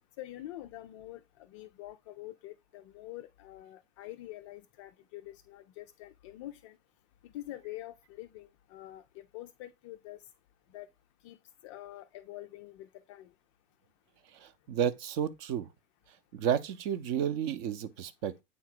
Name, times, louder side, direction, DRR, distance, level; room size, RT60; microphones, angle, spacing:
voice 1, 0.2-1.2 1.5-6.8 7.2-9.0 9.3-10.2 10.7-10.9 11.2-11.4 11.6-13.3, left 15 dB, 25° left, 0.3 m, -46 dB
voice 2, 14.3-15.7 16.3-18.4, right 9 dB, 40° right, 0.8 m, -32 dB
8.4 x 3.7 x 4.7 m
figure-of-eight pair, 90°, 38 cm